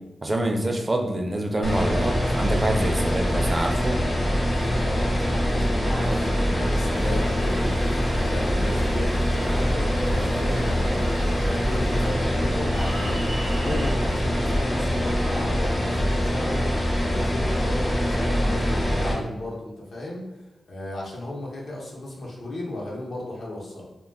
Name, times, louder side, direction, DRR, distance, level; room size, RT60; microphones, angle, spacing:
voice 1, 0.2-4.0, right 1 dB, 30° right, 4 dB, 0.4 m, -26 dB
sound 1, 1.6-19.1, equal, 45° left, 1.1 m, -24 dB
voice 2, 4.4-13.2 13.6-20.2 20.7-23.9, left 1 dB, 65° left, -3 dB, 0.8 m, -35 dB
Applause, 5.9-13.9, right 1 dB, 85° right, 0.7 m, -39 dB
2.3 x 2.2 x 3.4 m, 0.99 s
cardioid pair, 75°, 0 cm